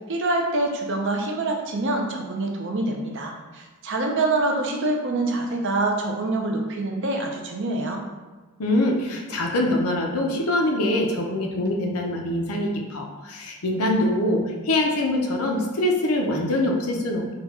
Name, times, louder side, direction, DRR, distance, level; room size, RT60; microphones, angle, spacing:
voice 1, 0.1-8.0, right 2 dB, 55° right, 2 dB, 0.6 m, -25 dB
voice 2, 8.6-17.3, left 1 dB, 85° left, 2 dB, 0.6 m, -24 dB
3.9 x 2.3 x 4.1 m, 1.3 s
head